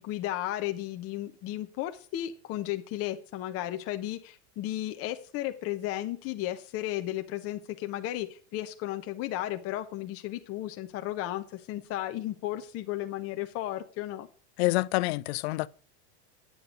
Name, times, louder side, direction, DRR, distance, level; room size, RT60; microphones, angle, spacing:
voice 1, 0.0-14.3, left 14 dB, 45° left, 0.9 m, -34 dB
voice 2, 14.6-15.7, left 21 dB, 65° left, 0.5 m, -27 dB
8.8 x 7.8 x 3.8 m
supercardioid pair, 115°, 34 cm